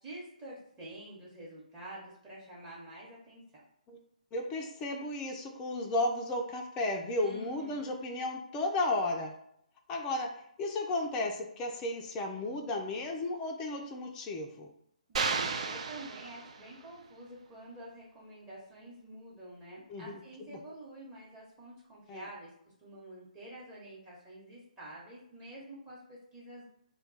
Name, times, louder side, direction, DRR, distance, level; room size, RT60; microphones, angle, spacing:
voice 1, 0.0-3.6 7.2-7.9 15.1-22.5 22.8-26.6, right 1 dB, 15° right, -7 dB, 0.9 m, -48 dB
voice 2, 4.3-9.3 9.9-10.3 10.6-14.7 19.9-20.2 20.5-20.6 22.1-22.3, left 2 dB, 15° left, 1 dB, 0.4 m, -34 dB
sound 1, 15.1-16.9, right 5 dB, 55° right, 0.4 m, -34 dB
2.2 x 2.2 x 3.9 m, 0.72 s
figure-of-eight pair, 140°, 4 cm